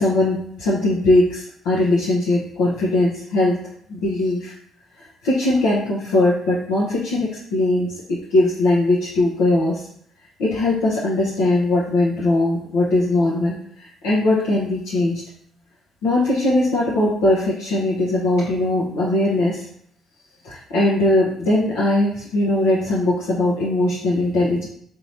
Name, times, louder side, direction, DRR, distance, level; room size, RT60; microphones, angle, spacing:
voice 1, 0.0-3.6 3.9-4.5 5.2-9.8 10.4-15.2 16.0-19.7 20.4-24.7, left 2 dB, 90° left, -6 dB, 0.9 m, -20 dB
3.7 x 2.8 x 4.2 m, 0.66 s
supercardioid pair, 65°, 0 cm